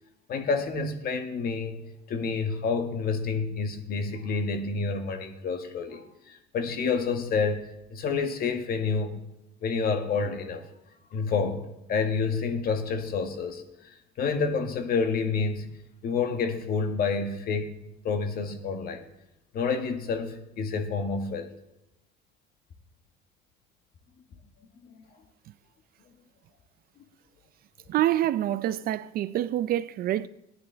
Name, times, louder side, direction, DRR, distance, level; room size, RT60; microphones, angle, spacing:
voice 1, 0.3-1.8 2.1-9.2 9.6-10.6 11.1-13.6 14.2-15.7 16.0-17.8 18.0-19.0 19.5-21.5, left 5 dB, 50° left, 1.7 m, -29 dB
voice 2, 27.9-30.3, right 13 dB, 50° right, 0.4 m, -26 dB
17.5 x 9.7 x 3.4 m
cardioid pair, 130°, 19 cm